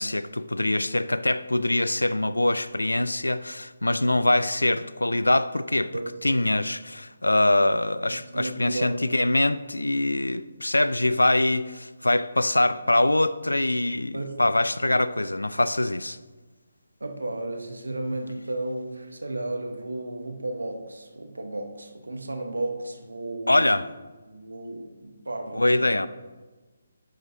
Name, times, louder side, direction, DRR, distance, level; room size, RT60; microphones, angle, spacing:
voice 1, 0.0-6.0 6.2-16.2 23.5-23.9 25.5-26.1, left 1 dB, 90° left, 0.3 m, -23 dB
voice 2, 8.1-9.0 9.2-9.3 14.1-14.6 17.0-23.7 24.3-26.1, right 2 dB, 80° right, 1.1 m, -33 dB
10.5 x 6.3 x 2.8 m
figure-of-eight pair, 145°, 0 cm